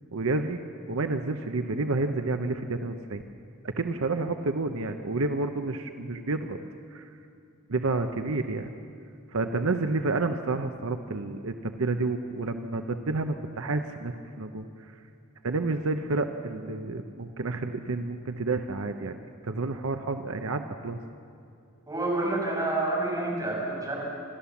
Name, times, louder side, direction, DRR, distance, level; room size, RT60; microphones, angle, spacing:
voice 1, 0.1-0.6 0.9-3.2 3.6-6.6 6.9-7.1 7.7-8.7 9.3-14.6 15.4-19.2 19.4-21.0, right 3 dB, 70° right, 7 dB, 0.8 m, -30 dB
voice 2, 21.9-23.9, right 2 dB, 15° right, -4 dB, 5.9 m, -28 dB
28.0 x 13.0 x 7.2 m, 2.5 s
head